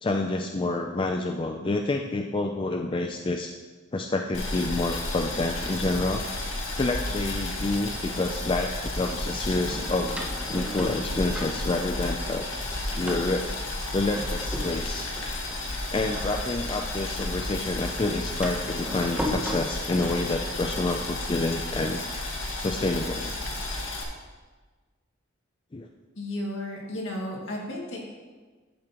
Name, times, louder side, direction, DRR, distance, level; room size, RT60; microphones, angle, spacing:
voice 1, 0.0-3.5 3.9-6.2 6.7-10.2 10.5-12.5 13.0-13.6 13.9-15.1 15.9-22.0 22.6-23.4 25.7-25.9, left 2 dB, 25° left, 3 dB, 0.4 m, -28 dB
Boiling, 4.3-24.0, left 2 dB, 85° left, 1.6 m, -32 dB
Door, 7.9-8.5 9.7-12.2 12.5-17.0 17.3-19.5, equal, 5° right, 0.9 m, -37 dB
voice 2, 26.2-28.0, left 1 dB, 70° left, -2 dB, 2.1 m, -33 dB
13.0 x 7.2 x 3.0 m, 1.3 s
head